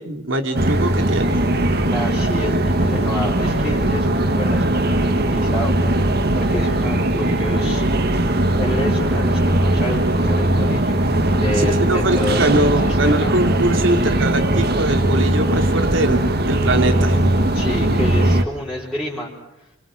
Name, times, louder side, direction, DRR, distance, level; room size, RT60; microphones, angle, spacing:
voice 1, 0.0-1.5 11.4-17.2, right 2 dB, 75° right, 6 dB, 3.1 m, -22 dB
sound 1, 0.5-18.4, right 1 dB, 55° right, 2.0 m, -19 dB
voice 2, 1.9-5.7 6.3-7.8 8.6-11.0 11.3-13.3 17.5-19.3 19.6-19.7, left 1 dB, ahead, -7 dB, 4.6 m, -28 dB
29.5 x 25.5 x 6.5 m, 0.88 s
head